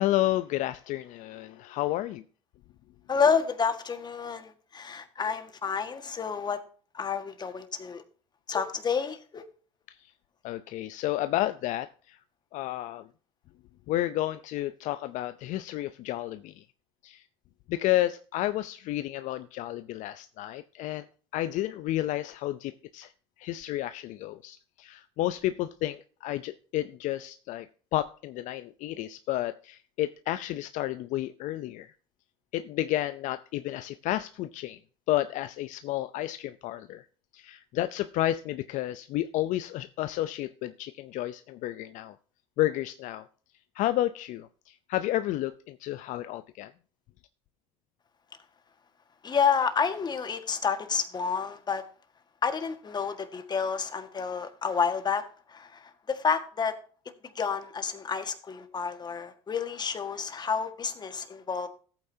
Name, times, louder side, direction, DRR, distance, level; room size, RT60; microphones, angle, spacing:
voice 1, 0.0-2.2 9.9-10.1 10.4-12.2 12.5-13.1 13.9-16.7 17.0-17.2 17.7-21.1 21.3-23.1 23.4-31.9 32.5-34.8 35.1-37.1 37.3-42.2 42.6-43.3 43.7-46.7, left 14 dB, 60° left, 12 dB, 0.5 m, -31 dB
voice 2, 3.1-6.6 6.9-8.0 8.5-9.4 49.2-51.8 52.4-56.7 57.3-61.7, left 6 dB, 30° left, 8 dB, 1.6 m, -29 dB
13.5 x 8.9 x 2.7 m, 0.41 s
supercardioid pair, 85°, 14 cm